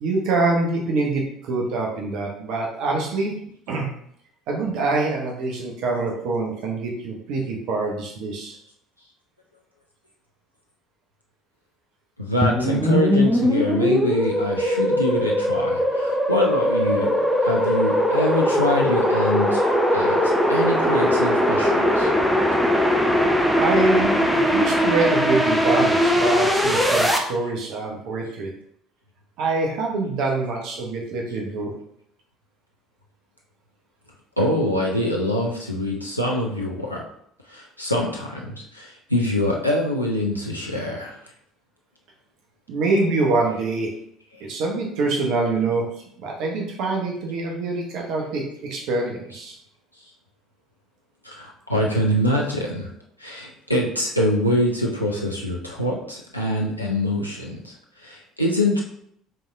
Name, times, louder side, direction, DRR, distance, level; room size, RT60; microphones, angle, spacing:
voice 1, 0.0-3.4 3.7-3.9 4.5-8.6 23.0-23.1 23.6-28.5 29.4-31.7 42.7-43.9 44.4-49.6, right 3 dB, 55° right, 0 dB, 0.9 m, -25 dB
voice 2, 12.2-22.1 34.4-37.0 37.5-41.2 45.1-45.2 49.3-49.4 51.2-52.9 53.2-58.8, left 1 dB, 90° left, -2 dB, 0.5 m, -25 dB
sound 1, 12.4-27.2, equal, 5° right, 0.7 m, -20 dB
5.7 x 3.4 x 2.6 m, 0.69 s
figure-of-eight pair, 55°, 0 cm